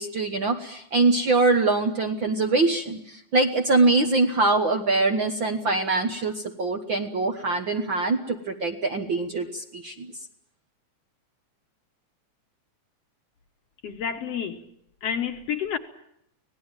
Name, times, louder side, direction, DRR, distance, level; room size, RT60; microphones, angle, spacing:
voice 1, 0.0-10.1, right 3 dB, 50° right, 1.5 m, -23 dB
voice 2, 13.8-14.6 15.0-15.8, left 8 dB, 60° left, 2.1 m, -29 dB
25.0 x 18.5 x 9.0 m
omnidirectional pair, 3.6 m